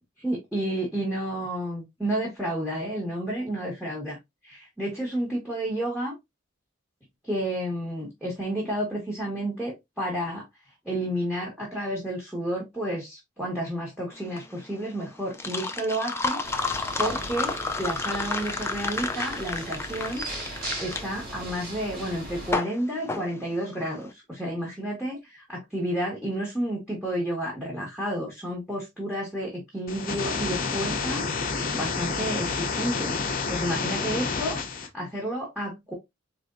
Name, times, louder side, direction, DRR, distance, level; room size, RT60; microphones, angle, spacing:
voice 1, 0.2-4.2 4.4-6.1 7.2-10.4 10.8-16.4 17.0-20.2 20.5-31.2 31.7-35.9, right 1 dB, 5° right, 1.3 m, -31 dB
sound 1, 14.2-24.0, left 3 dB, 15° left, 0.3 m, -31 dB
sound 2, 16.4-22.5, right 1 dB, 45° right, 1.9 m, -38 dB
sound 3, 29.9-34.9, left 4 dB, 45° left, 0.7 m, -29 dB
4.4 x 3.2 x 2.5 m
head